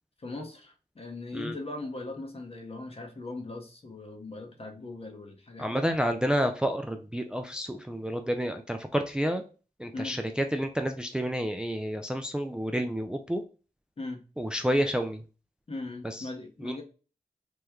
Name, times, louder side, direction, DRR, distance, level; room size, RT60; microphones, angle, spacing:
voice 1, 0.2-5.8 9.9-10.2 14.0-14.2 15.7-16.8, left 2 dB, 40° left, 4 dB, 0.8 m, -39 dB
voice 2, 5.6-9.4 9.8-13.4 14.4-15.2 16.0-16.3 16.6-16.8, equal, 5° right, 6 dB, 0.3 m, -29 dB
3.1 x 2.2 x 3.5 m, 0.35 s
cardioid pair, 55°, 15 cm